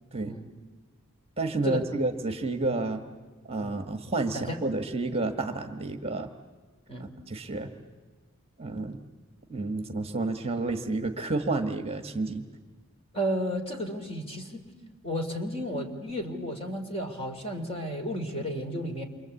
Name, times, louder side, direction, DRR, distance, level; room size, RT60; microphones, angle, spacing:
voice 1, 1.4-3.0 3.5-6.3 7.0-7.7 8.6-9.0 9.5-12.5, right 2 dB, 30° right, 6 dB, 1.4 m, -30 dB
voice 2, 13.1-14.6 15.0-19.0, equal, 25° left, 4 dB, 2.9 m, -33 dB
29.0 x 24.5 x 8.3 m, 1.4 s
head